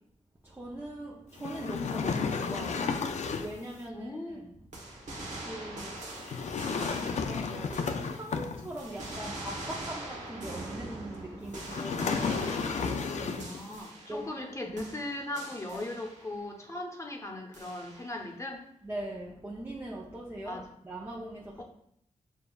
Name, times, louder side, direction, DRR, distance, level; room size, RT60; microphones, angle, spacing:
voice 1, 0.4-4.5 4.9-5.0 5.4-13.4 14.1-14.3 14.7-14.8 15.7-15.8 18.8-21.6, right 1 dB, 15° right, -3 dB, 0.6 m, -42 dB
sound 1, 1.4-3.6 6.2-8.9 11.6-13.6, left 5 dB, 60° left, 0.4 m, -32 dB
voice 2, 3.9-4.4 13.3-18.6 20.4-20.6 21.6-21.7, left 1 dB, 20° left, 1 dB, 0.9 m, -38 dB
sound 2, 4.7-8.4 8.8-14.5 14.8-16.4 17.5-18.3, right 1 dB, 65° right, 1.0 m, -43 dB
6.7 x 2.3 x 2.3 m, 0.73 s
cardioid pair, 65°, 13 cm